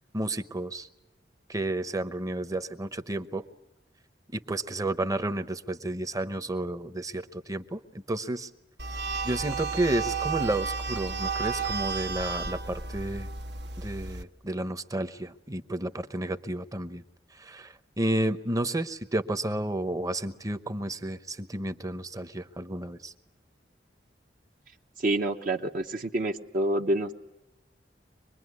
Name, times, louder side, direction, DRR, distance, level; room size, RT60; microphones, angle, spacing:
voice 1, 0.1-0.9 1.5-3.5 4.3-8.5 9.2-13.3 13.8-17.0 17.3-23.1, right 1 dB, 20° right, 11 dB, 0.9 m, -31 dB
sound 1, 8.8-14.2, right 4 dB, 70° right, 1.1 m, -32 dB
voice 2, 25.0-27.3, right 1 dB, 50° right, 3 dB, 0.9 m, -28 dB
25.0 x 21.5 x 9.5 m, 0.97 s
head